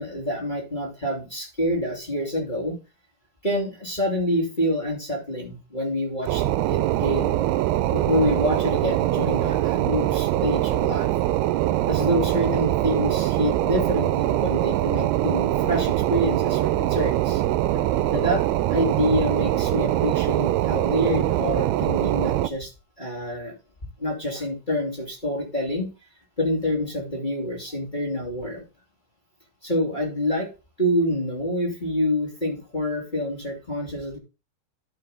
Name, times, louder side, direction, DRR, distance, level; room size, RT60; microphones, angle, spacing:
voice 1, 0.0-2.8 3.4-7.4 7.8-11.1 11.9-17.4 18.1-18.4 18.7-22.7 23.0-23.5 24.0-25.9 26.4-28.6 29.6-30.5 30.8-34.2, left 1 dB, 15° left, -2 dB, 2.1 m, -27 dB
sound 1, 6.3-22.5, right 14 dB, 85° right, 2.6 m, -23 dB
12.0 x 5.7 x 3.8 m, 0.30 s
omnidirectional pair, 4.5 m